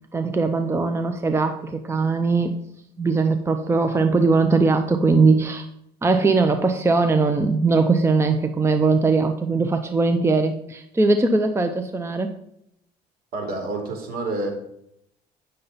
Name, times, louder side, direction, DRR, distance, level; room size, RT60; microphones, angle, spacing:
voice 1, 0.1-2.5 3.0-5.7 6.0-12.3, right 3 dB, 15° right, 7 dB, 0.7 m, -20 dB
voice 2, 13.3-14.5, right 2 dB, 65° right, 1 dB, 2.8 m, -28 dB
9.3 x 6.7 x 4.1 m, 0.75 s
cardioid pair, 110°, 17 cm